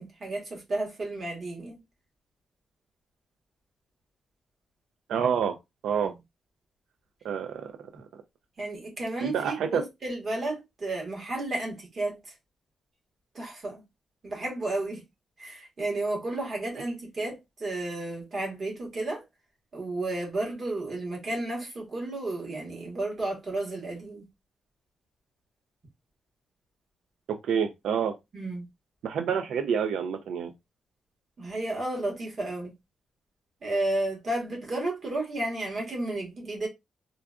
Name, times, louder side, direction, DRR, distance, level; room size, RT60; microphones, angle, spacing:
voice 1, 0.0-1.8 6.0-6.1 8.6-12.3 13.3-13.8 14.2-15.0 15.4-19.2 19.7-24.3 28.3-28.6 31.4-32.7 33.6-36.7, right 2 dB, 35° right, 1.2 m, -32 dB
voice 2, 5.1-5.6 5.8-6.1 7.2-7.7 9.2-9.8 27.3-28.1 29.0-30.5, right 7 dB, 90° right, 0.4 m, -28 dB
3.8 x 2.3 x 2.3 m
wide cardioid pair, 170°, 0 cm